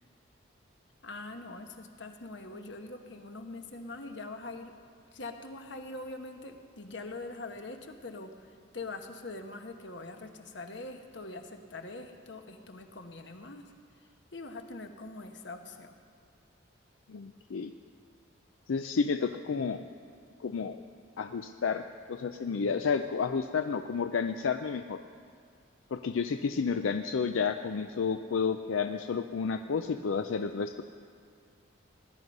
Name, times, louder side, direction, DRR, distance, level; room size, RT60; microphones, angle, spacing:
voice 1, 1.0-4.7 5.1-13.6 14.0-15.9, left 2 dB, 65° left, 5 dB, 1.1 m, -43 dB
voice 2, 17.1-17.7 18.7-19.8 20.4-20.8 21.2-21.8 22.1-25.0 25.9-30.8, left 5 dB, 85° left, 8 dB, 0.5 m, -31 dB
19.5 x 11.0 x 5.3 m, 2.2 s
head